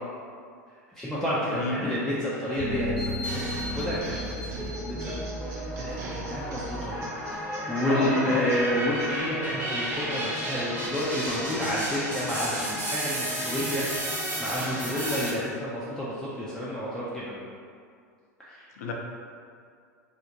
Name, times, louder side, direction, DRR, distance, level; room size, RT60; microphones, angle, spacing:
voice 1, 1.0-5.1 5.4-6.9 7.3-14.0 14.4-17.4 18.5-18.6, left 1 dB, 5° left, -10 dB, 0.4 m, -30 dB
voice 2, 1.5-2.0 7.9-8.5 18.8-18.9, left 3 dB, 75° left, 1 dB, 0.4 m, -29 dB
sound 1, 2.6-6.5 6.9-10.1 10.5-10.6 11.1-12.1 12.4-12.6 13.3-15.1, left 1 dB, 45° right, 1.0 m, -38 dB
sound 2, 3.2-4.1 4.6-15.3, right 1 dB, 20° right, 1.0 m, -33 dB
sound 3, 3.5-9.1, right 1 dB, 70° right, 0.5 m, -39 dB
2.3 x 2.1 x 2.8 m, 2.2 s
hypercardioid pair, 90°, 9 cm